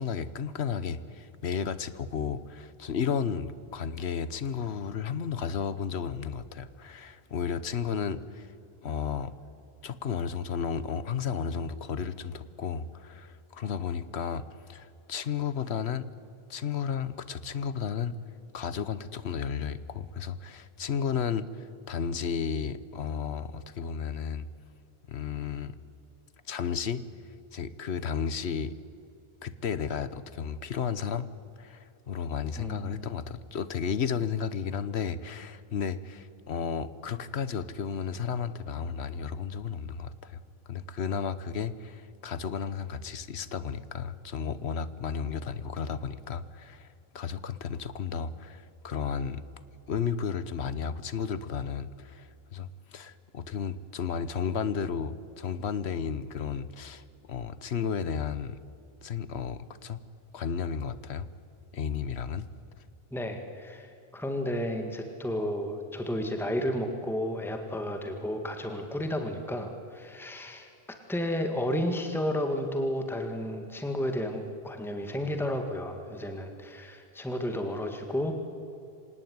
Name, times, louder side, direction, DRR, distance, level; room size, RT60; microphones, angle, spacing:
voice 1, 0.0-8.5 8.8-9.3 9.8-16.1 16.5-18.2 18.5-24.5 25.1-25.7 26.5-27.0 27.5-28.8 29.4-31.3 31.6-40.4 40.7-49.4 49.9-58.6 59.0-60.0 60.3-61.3 61.7-62.5, left 6 dB, 80° left, 15 dB, 1.3 m, -33 dB
voice 2, 32.6-33.0 63.1-70.7 71.1-78.3, left 1 dB, ahead, 5 dB, 1.9 m, -32 dB
25.5 x 18.5 x 9.5 m, 2.6 s
omnidirectional pair, 1.1 m